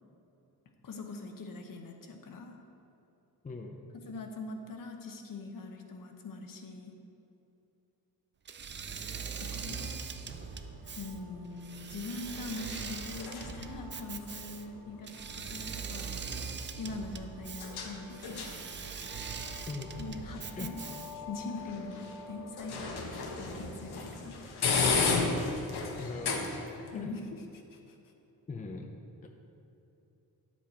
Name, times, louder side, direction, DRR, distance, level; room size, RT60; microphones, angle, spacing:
voice 1, 0.8-2.6 4.1-6.9 9.4-10.0 11.0-16.4 16.8-18.6 20.0-20.8 21.1-24.4 26.9-27.4 27.7-28.0, left 3 dB, 55° left, 3 dB, 1.1 m, -42 dB
voice 2, 3.4-3.8 19.7-20.0 20.6-20.7 26.0-26.5 26.9-27.2 28.5-28.9 29.2-29.3, left 3 dB, 20° left, 2 dB, 0.6 m, -40 dB
Engine / Mechanisms, 8.5-21.3, right 6 dB, 30° right, 0.4 m, -41 dB
sound 1, 9.4-26.9, left 4 dB, 80° left, 1.3 m, -37 dB
10.0 x 7.3 x 4.4 m, 2.9 s
wide cardioid pair, 150°, 38 cm